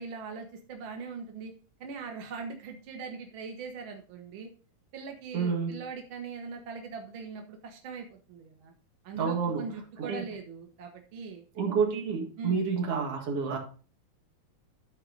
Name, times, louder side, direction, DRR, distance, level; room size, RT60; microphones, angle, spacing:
voice 1, 0.0-1.5 1.8-4.5 4.9-8.7 9.0-11.4 12.4-12.6, right 5 dB, 70° right, 3 dB, 1.1 m, -41 dB
voice 2, 5.3-5.8 9.2-9.7 10.0-10.3 11.6-13.6, right 5 dB, 45° right, 0 dB, 2.5 m, -29 dB
13.5 x 4.7 x 3.9 m, 0.38 s
omnidirectional pair, 4.3 m